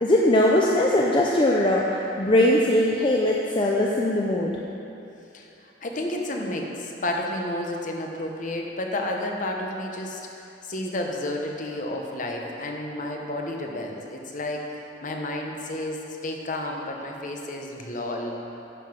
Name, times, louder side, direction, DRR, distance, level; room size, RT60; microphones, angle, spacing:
voice 1, 0.0-4.5, left 1 dB, 25° left, -3 dB, 0.5 m, -20 dB
voice 2, 5.3-10.3 10.6-14.6 15.0-18.4, left 1 dB, 45° left, 1 dB, 0.9 m, -31 dB
10.0 x 5.6 x 5.9 m, 2.9 s
head